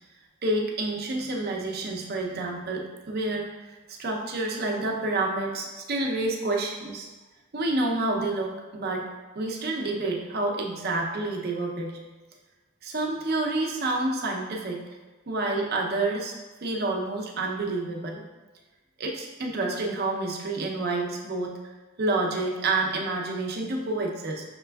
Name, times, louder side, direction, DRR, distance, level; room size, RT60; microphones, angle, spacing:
voice 1, 0.4-3.6 3.9-7.1 7.5-9.1 9.4-12.0 12.8-14.8 15.3-18.2 19.0-21.6 22.0-24.4, right 2 dB, 50° right, 1 dB, 0.6 m, -28 dB
5.9 x 3.3 x 2.3 m, 1.3 s
head